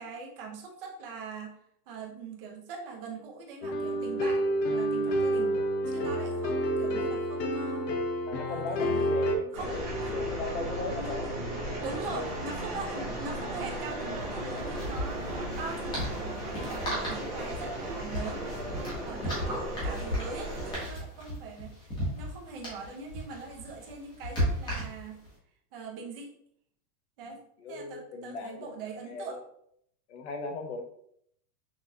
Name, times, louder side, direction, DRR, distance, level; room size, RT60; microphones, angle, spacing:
voice 1, 0.0-1.6 1.9-5.6 5.9-7.9 8.5-9.1 9.5-10.1 11.0-11.1 11.8-18.4 19.0-21.7 22.2-25.2 25.7-26.3 27.2-27.4 27.7-29.4, right 4 dB, 35° right, 1 dB, 0.7 m, -41 dB
sound 1, 3.6-9.4, right 1 dB, 90° left, 0.9 m, -29 dB
voice 2, 8.3-11.3 11.6-12.4 19.1-19.3 27.2-29.5 30.1-30.8, left 3 dB, 45° left, 5 dB, 0.7 m, -39 dB
sound 2, 9.5-20.7, right 1 dB, 10° right, 0.4 m, -35 dB
sound 3, 12.1-12.2 12.4-12.6 14.1-25.3, equal, 10° left, 0.9 m, -36 dB
6.0 x 2.4 x 2.7 m, 0.69 s
supercardioid pair, 175°, 49 cm